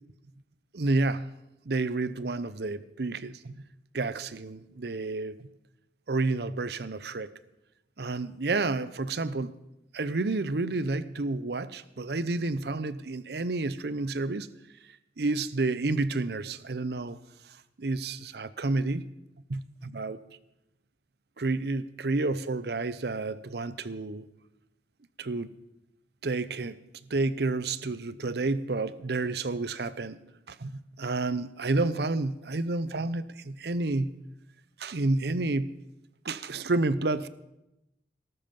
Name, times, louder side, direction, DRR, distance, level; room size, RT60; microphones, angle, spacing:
voice 1, 0.7-1.3 1.7-3.6 3.9-5.5 6.1-7.3 8.0-9.5 9.9-14.5 15.2-17.2 17.8-19.1 19.5-20.2 21.4-24.2 25.2-25.5 26.2-26.8 27.1-30.2 30.5-34.2 34.8-35.7 36.2-37.3, right 3 dB, 60° right, 0.7 m, -30 dB
19.5 x 12.5 x 5.3 m
head